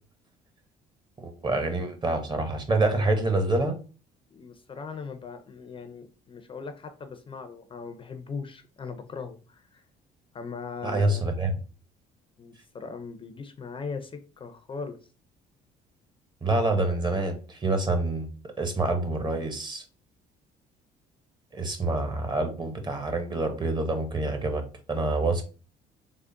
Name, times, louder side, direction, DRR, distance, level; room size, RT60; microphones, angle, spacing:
voice 1, 1.2-3.8 10.8-11.5 16.4-18.3 18.6-19.8 21.5-24.6 24.9-25.4, right 2 dB, 25° right, 6 dB, 0.8 m, -26 dB
voice 2, 4.3-9.9 10.3-11.2 12.4-15.0, left 5 dB, 30° left, 8 dB, 0.5 m, -39 dB
3.6 x 2.0 x 3.7 m, 0.35 s
cardioid pair, 110°, 17 cm